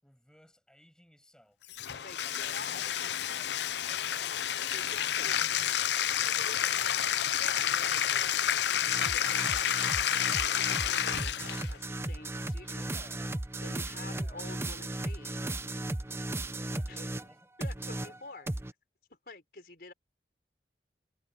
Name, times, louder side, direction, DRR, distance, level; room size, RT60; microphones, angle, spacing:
voice 1, 0.0-5.5 6.3-6.8 12.7-13.4 13.8-14.5 16.7-17.5, equal, 5° left, 6.3 m, -60 dB
Bathtub (filling or washing), 1.7-11.7, left 10 dB, 75° left, 0.6 m, -30 dB
voice 2, 2.0-3.1 4.7-5.4 6.1-7.0 7.4-9.7 10.1-13.2 13.6-15.5 16.9-17.1 17.6-18.6 19.2-19.9, left 3 dB, 55° left, 5.0 m, -48 dB
sound 1, 8.8-17.3 17.6-18.7, right 2 dB, 15° right, 0.5 m, -36 dB
head